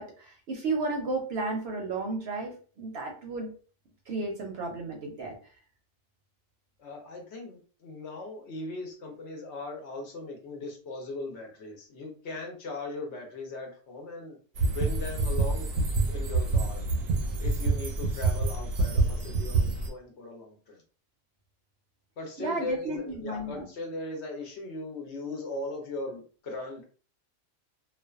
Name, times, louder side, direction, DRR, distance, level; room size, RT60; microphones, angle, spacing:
voice 1, 0.0-3.5 4.1-5.4 22.4-23.7, right 3 dB, 60° right, 1 dB, 0.7 m, -33 dB
voice 2, 6.8-14.4 14.7-15.7 16.1-16.8 17.4-20.8 22.2-26.8, left 2 dB, 65° left, 2 dB, 0.9 m, -38 dB
sound 1, 14.6-19.9, right 3 dB, 85° right, 1.0 m, -27 dB
2.4 x 2.2 x 2.3 m, 0.39 s
omnidirectional pair, 1.3 m